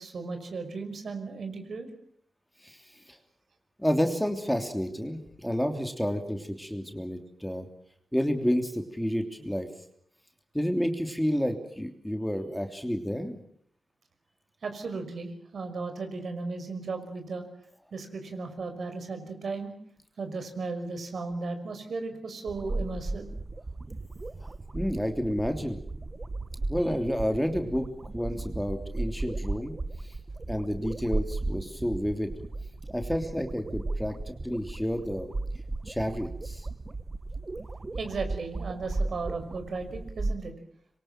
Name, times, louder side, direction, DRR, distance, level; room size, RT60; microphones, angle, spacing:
voice 1, 0.0-1.9 14.6-17.5 17.9-19.7 20.2-23.3 38.0-40.5, right 3 dB, 70° right, 7 dB, 5.8 m, -35 dB
voice 2, 3.8-7.6 8.1-9.7 10.5-13.4 24.7-25.8 26.7-27.9 28.1-29.7 30.5-32.3 32.9-35.3 35.9-36.7, equal, ahead, 5 dB, 3.2 m, -30 dB
sound 1, 22.5-40.4, right 2 dB, 35° right, 1.1 m, -35 dB
26.5 x 24.0 x 7.6 m, 0.65 s
wide cardioid pair, 100°, 0 cm